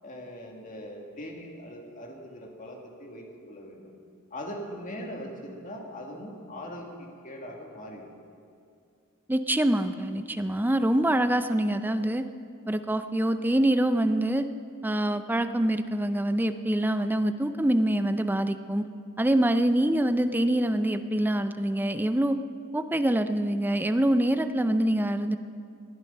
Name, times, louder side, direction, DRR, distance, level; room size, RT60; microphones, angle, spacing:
voice 1, 0.0-4.0 4.3-8.1, equal, 40° left, 1 dB, 2.0 m, -41 dB
voice 2, 9.3-12.3 12.7-14.5 14.8-18.8 19.2-22.4 22.7-25.4, right 1 dB, 10° right, 10 dB, 0.4 m, -25 dB
19.5 x 11.0 x 5.5 m, 2.4 s
head